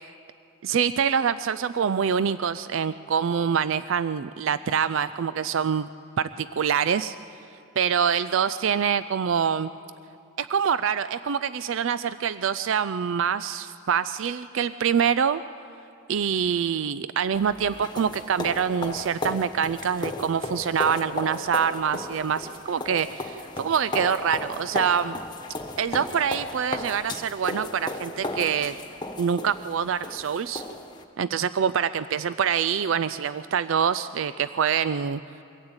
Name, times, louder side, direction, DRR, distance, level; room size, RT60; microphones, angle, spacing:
voice 1, 0.6-5.9 6.2-7.2 7.8-9.7 10.4-15.4 16.1-25.2 25.8-28.8 29.2-30.6 31.2-35.2, right 7 dB, 70° right, 14 dB, 0.4 m, -25 dB
sound 1, 17.3-31.0, left 2 dB, 20° left, 1.2 m, -35 dB
23.5 x 16.0 x 8.8 m, 2.8 s
head